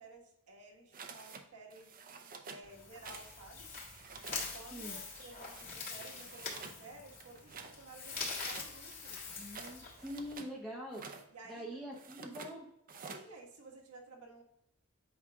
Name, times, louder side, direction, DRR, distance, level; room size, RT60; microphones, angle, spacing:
voice 1, 0.0-2.0 2.4-3.7 4.1-9.3 11.3-11.8 13.0-14.4, right 2 dB, 80° right, 1 dB, 1.5 m, -54 dB
sound 1, 0.9-1.4 1.7-2.7 3.0-3.4 3.6-4.4 4.9-5.7 6.0-6.8 7.2-7.7 8.3-10.5 10.9-11.3 11.9-12.5 12.9-13.3, right 5 dB, 40° right, 0.6 m, -50 dB
sound 2, 2.6-10.3, left 4 dB, 40° left, 1.8 m, -44 dB
voice 2, 9.3-11.0 11.5-12.7, equal, ahead, -4 dB, 0.7 m, -44 dB
8.5 x 4.9 x 2.3 m, 0.80 s
head